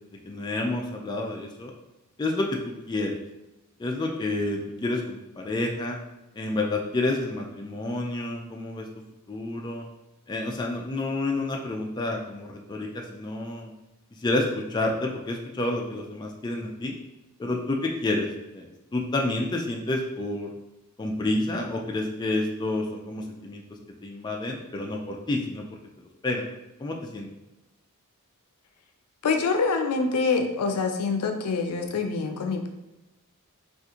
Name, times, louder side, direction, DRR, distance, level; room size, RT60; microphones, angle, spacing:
voice 1, 0.2-1.7 2.2-3.2 3.8-6.0 6.3-8.9 9.3-9.9 10.3-13.7 14.2-16.9 17.4-18.3 18.5-20.5 21.0-23.6 24.0-25.6 26.2-26.5 26.8-27.3, left 2 dB, 20° left, 0 dB, 0.3 m, -29 dB
voice 2, 29.2-32.7, left 4 dB, 85° left, 5 dB, 0.4 m, -25 dB
3.6 x 2.5 x 2.8 m, 0.99 s
head